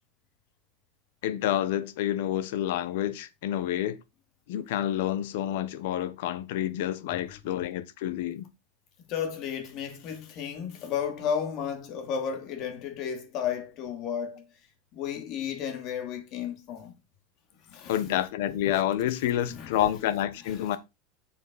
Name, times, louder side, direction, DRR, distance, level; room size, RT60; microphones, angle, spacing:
voice 1, 1.2-4.0 4.5-8.5 17.9-20.8, left 12 dB, 75° left, 1.2 m, -28 dB
voice 2, 9.1-14.5 14.9-16.9 17.6-18.0 19.4-19.8 20.4-20.8, left 8 dB, 50° left, 2.6 m, -33 dB
7.6 x 7.2 x 4.1 m
supercardioid pair, 120°, 0 cm